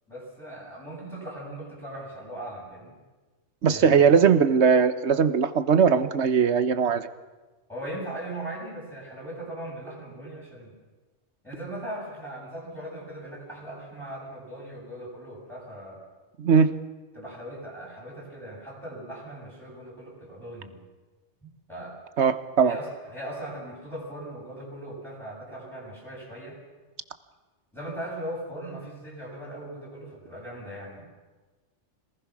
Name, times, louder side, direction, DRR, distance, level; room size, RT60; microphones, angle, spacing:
voice 1, 0.1-3.0 3.7-4.0 7.7-10.7 11.4-16.0 17.1-20.8 21.4-22.0 22.6-26.6 27.7-31.0, right 1 dB, ahead, -6 dB, 7.7 m, -39 dB
voice 2, 3.6-7.1 16.4-16.7 22.2-22.8, right 6 dB, 65° right, 12 dB, 1.2 m, -20 dB
26.0 x 19.0 x 6.1 m, 1.3 s
omnidirectional pair, 1.3 m